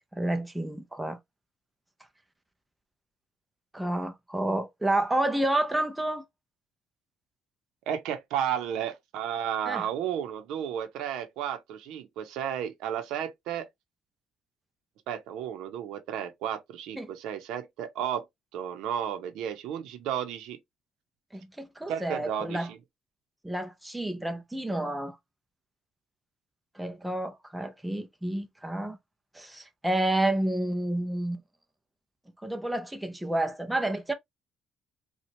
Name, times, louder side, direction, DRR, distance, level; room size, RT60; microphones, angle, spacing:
voice 1, 0.1-1.2 3.7-6.2 9.7-9.9 17.0-17.1 21.3-22.7 23.4-25.2 26.8-29.0 29.3-31.4 32.4-34.1, right 1 dB, 5° right, 0.6 m, -30 dB
voice 2, 7.9-13.7 15.1-18.3 18.5-20.6 21.9-22.8, right 9 dB, 90° right, 0.8 m, -33 dB
4.4 x 2.4 x 2.8 m
cardioid pair, 120°, 0 cm